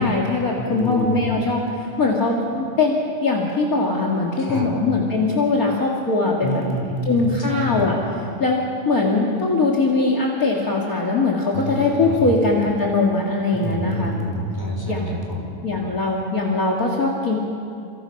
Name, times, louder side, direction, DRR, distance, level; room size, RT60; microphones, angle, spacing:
voice 1, 0.0-6.6 7.1-8.0 8.4-14.2 14.9-15.1 15.6-17.4, left 3 dB, 45° left, -1 dB, 2.7 m, -21 dB
voice 2, 0.6-1.3 4.4-4.7 6.4-7.8 11.5-12.3 13.5-15.5, equal, 10° left, -1 dB, 5.2 m, -28 dB
30.0 x 28.5 x 5.9 m, 2.5 s
omnidirectional pair, 2.2 m